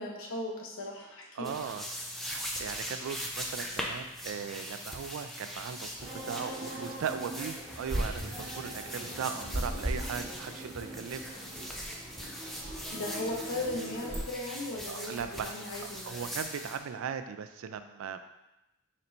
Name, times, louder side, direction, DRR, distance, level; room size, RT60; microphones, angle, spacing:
voice 1, 0.0-1.5 2.5-2.7 12.9-16.3, left 2 dB, 75° left, -2 dB, 0.9 m, -37 dB
sound 1, 1.4-16.8, equal, ahead, 0.4 m, -41 dB
voice 2, 1.4-1.9 2.2-11.4 14.9-15.6 15.8-18.2, right 7 dB, 80° right, 9 dB, 0.3 m, -38 dB
sound 2, 6.0-14.2, right 1 dB, 55° right, 1.4 m, -39 dB
4.3 x 2.6 x 4.3 m, 0.94 s
head